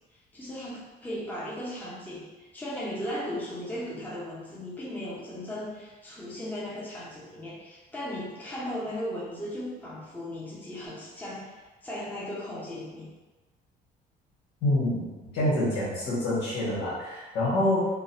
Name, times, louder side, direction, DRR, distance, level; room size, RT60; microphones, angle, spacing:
voice 1, 0.3-13.1, left 1 dB, 10° left, -6 dB, 0.8 m, -37 dB
voice 2, 14.6-17.9, left 1 dB, 80° left, -7 dB, 1.5 m, -27 dB
3.8 x 2.3 x 2.7 m, 1.2 s
cardioid pair, 110°, 17 cm